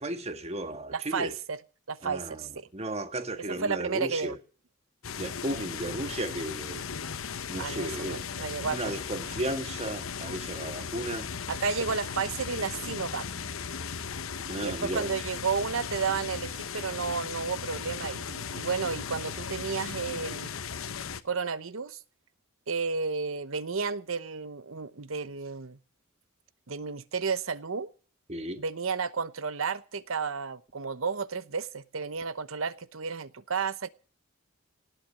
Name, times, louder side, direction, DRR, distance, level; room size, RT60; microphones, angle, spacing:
voice 1, 0.0-1.3 2.0-4.4 5.2-6.8 7.5-8.2 8.6-11.3 14.5-15.1 28.3-28.6, right 1 dB, 30° right, 1.7 m, -34 dB
voice 2, 0.9-1.6 1.9-2.7 3.5-4.4 7.6-8.9 11.5-13.3 14.6-20.5 21.2-22.0 22.7-25.8 26.7-27.9 28.6-33.9, right 5 dB, 80° right, 0.9 m, -32 dB
sound 1, 5.0-21.2, left 6 dB, 80° left, 1.0 m, -37 dB
18.5 x 9.1 x 6.5 m
head